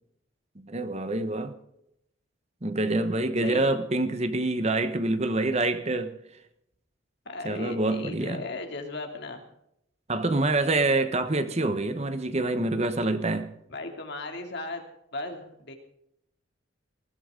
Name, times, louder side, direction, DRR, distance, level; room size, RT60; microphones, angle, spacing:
voice 1, 0.6-1.5 2.6-6.1 7.4-8.4 10.1-13.5, right 2 dB, 30° right, 1.0 m, -26 dB
voice 2, 7.2-9.4 13.7-14.8 15.1-15.7, left 2 dB, 55° left, 2.8 m, -36 dB
20.0 x 15.0 x 3.8 m
head